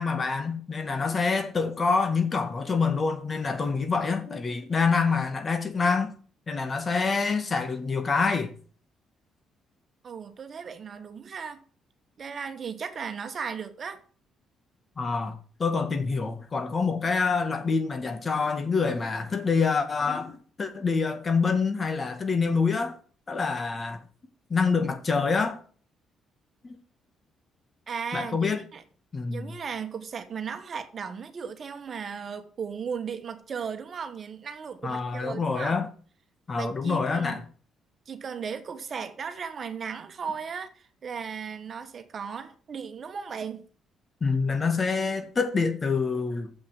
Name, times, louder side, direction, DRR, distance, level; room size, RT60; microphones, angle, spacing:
voice 1, 0.0-6.1 6.5-8.5 15.0-23.0 23.3-24.0 24.5-25.6 26.6-26.8 28.1-28.6 29.1-29.5 34.8-35.9 36.5-37.4 44.2-46.5, left 4 dB, 40° left, 1.8 m, -26 dB
voice 2, 10.0-11.6 12.2-14.0 27.9-28.8 29.3-35.8 36.5-37.4 38.1-43.7, right 6 dB, 50° right, 1.3 m, -36 dB
7.3 x 5.9 x 7.4 m
supercardioid pair, 65°, 0 cm